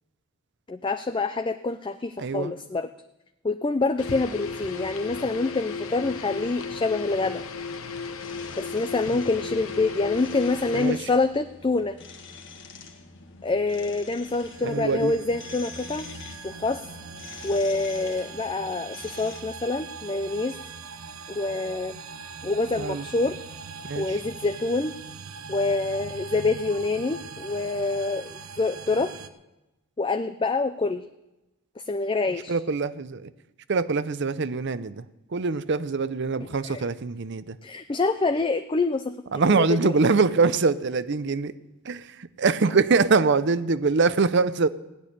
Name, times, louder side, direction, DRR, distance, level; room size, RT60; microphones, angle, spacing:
voice 1, 0.7-2.9 3.4-7.4 8.6-12.0 13.4-16.1 16.4-16.8 17.4-20.6 21.3-22.0 22.4-23.4 24.0-24.9 25.5-29.1 30.0-31.0 31.8-32.6 36.4-36.8 37.6-39.3 39.6-40.0, left 3 dB, 25° left, 9 dB, 0.4 m, -26 dB
voice 2, 2.2-2.5 10.7-11.0 14.6-15.1 22.8-23.1 23.8-24.0 32.5-33.3 33.7-35.0 35.3-37.6 39.3-41.5 41.9-42.0 42.4-44.7, right 4 dB, 55° right, 15 dB, 0.6 m, -23 dB
sound 1, 4.0-11.1, left 5 dB, 80° left, 1.0 m, -35 dB
sound 2, 8.2-19.4, left 4 dB, 60° left, 1.5 m, -46 dB
sound 3, 14.3-29.3, right 5 dB, 90° right, 0.9 m, -41 dB
16.5 x 6.4 x 10.0 m, 0.98 s
head